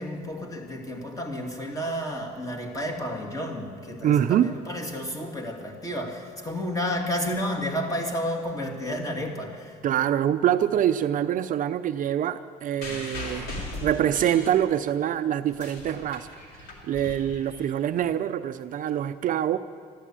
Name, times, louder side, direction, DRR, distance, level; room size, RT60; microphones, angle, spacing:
voice 1, 0.0-9.8, equal, 20° left, 1 dB, 2.4 m, -31 dB
voice 2, 4.0-4.5 9.8-13.5 13.8-19.6, right 10 dB, 55° right, 10 dB, 0.5 m, -25 dB
sound 1, 12.8-15.0 15.4-18.0 18.9-19.0, left 2 dB, 70° left, 3.2 m, -38 dB
13.0 x 12.0 x 8.7 m, 2.1 s
cardioid pair, 110°, 17 cm